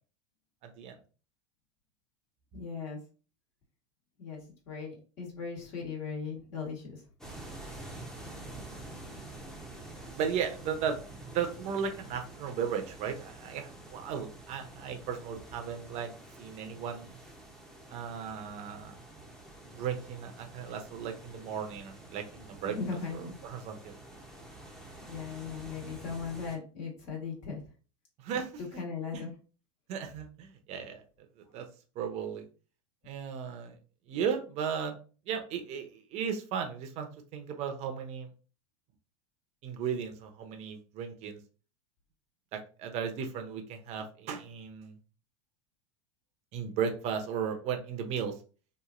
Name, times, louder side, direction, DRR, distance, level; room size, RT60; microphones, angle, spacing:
voice 1, 0.6-1.0 10.1-11.0 11.3-16.1 16.4-17.2 17.9-19.0 19.7-22.8 23.4-23.9 28.2-28.8 29.1-29.2 29.9-31.0 31.4-31.6 32.0-32.4 33.0-33.8 34.1-35.0 35.3-38.3 39.6-41.4 42.5-45.0 46.5-48.3, right 7 dB, 45° right, 6 dB, 0.6 m, -35 dB
voice 2, 2.5-3.0 4.2-4.4 4.7-7.0 22.6-23.4 25.1-27.6 28.8-29.3, left 5 dB, 55° left, -2 dB, 1.3 m, -38 dB
sound 1, 7.2-26.6, right 2 dB, 5° left, 0.7 m, -48 dB
3.0 x 2.5 x 2.4 m, 0.36 s
hypercardioid pair, 105°, 16 cm